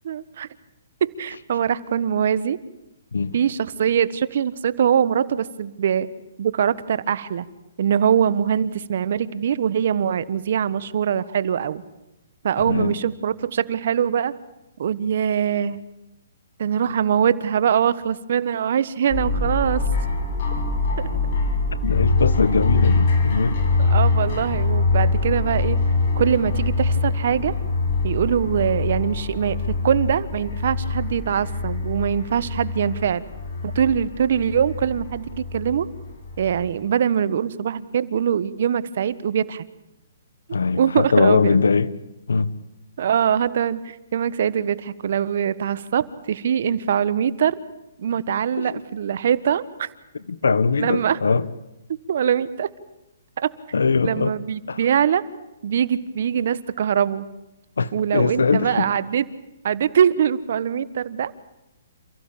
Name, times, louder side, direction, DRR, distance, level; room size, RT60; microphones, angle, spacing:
voice 1, 0.0-0.5 1.0-2.6 3.3-6.1 6.4-7.4 7.8-11.8 12.4-14.3 14.8-15.8 16.6-19.8 21.0-21.1 23.9-25.8 26.2-27.5 28.0-33.2 33.6-35.9 36.4-39.6 40.8-41.6 43.0-47.6 48.0-49.9 50.8-51.2 52.1-52.7 54.0-55.2 55.6-57.3 57.9-59.2 59.6-61.3, right 8 dB, 60° right, 16 dB, 1.3 m, -22 dB
voice 2, 12.6-13.0 21.8-23.6 40.5-41.9 42.3-42.5 48.6-48.8 50.1-51.4 53.7-54.3 54.7-54.8 57.8-58.9, left 4 dB, 85° left, 16 dB, 1.3 m, -21 dB
sound 1, 19.1-36.6, left 3 dB, 50° left, 6.9 m, -24 dB
28.5 x 15.5 x 8.6 m, 0.94 s
hypercardioid pair, 145°, 0 cm